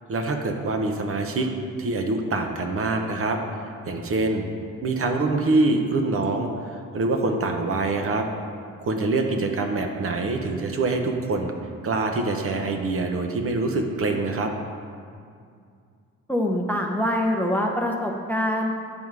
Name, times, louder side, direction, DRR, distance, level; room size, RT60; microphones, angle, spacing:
voice 1, 0.1-1.5 1.8-3.4 3.9-4.5 4.8-8.3 8.8-11.5 11.8-14.5, right 3 dB, 45° right, 3 dB, 0.8 m, -25 dB
voice 2, 16.3-18.7, left 1 dB, 5° left, 0 dB, 0.7 m, -24 dB
9.4 x 3.5 x 4.7 m, 2.3 s
cardioid pair, 90°, 30 cm